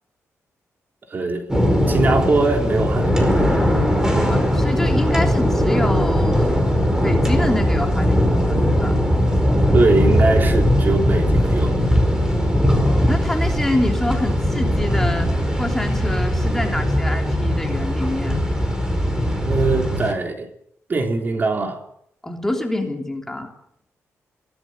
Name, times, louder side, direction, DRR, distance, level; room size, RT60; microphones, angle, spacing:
voice 1, 1.1-1.5 1.9-3.7 9.7-11.8 19.4-20.5 20.9-21.8, right 3 dB, 40° right, 3.7 m, -21 dB
sound 1, 1.5-20.1, equal, 10° right, 5.1 m, -19 dB
voice 2, 3.9-6.6 7.0-9.0 12.6-18.4 22.2-23.5, left 1 dB, 5° left, 3.4 m, -26 dB
23.0 x 17.5 x 8.0 m
wide cardioid pair, 130°, 5 cm